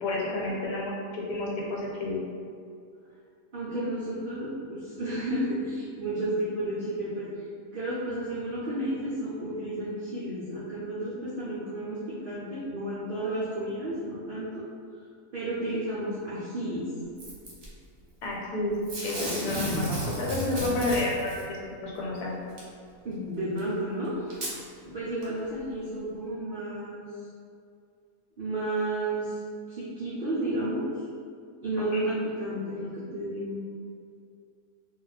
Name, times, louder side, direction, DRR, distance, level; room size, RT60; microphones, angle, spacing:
voice 1, 0.0-2.2 18.2-18.7 19.0-22.4 31.9-32.0, left 2 dB, 80° left, -4 dB, 1.2 m, -30 dB
voice 2, 3.5-7.3 7.7-14.6 15.3-16.9 23.0-27.0 28.4-29.4 29.7-30.9 31.6-33.6, right 1 dB, 80° right, -8 dB, 0.4 m, -32 dB
Packing tape duct tape / Tearing, 17.2-17.7 18.9-21.4 22.6-22.7 23.6-23.7 24.3-24.5 25.2-25.3, equal, 45° right, 0.8 m, -32 dB
2.4 x 2.2 x 3.9 m, 2.4 s
omnidirectional pair, 1.6 m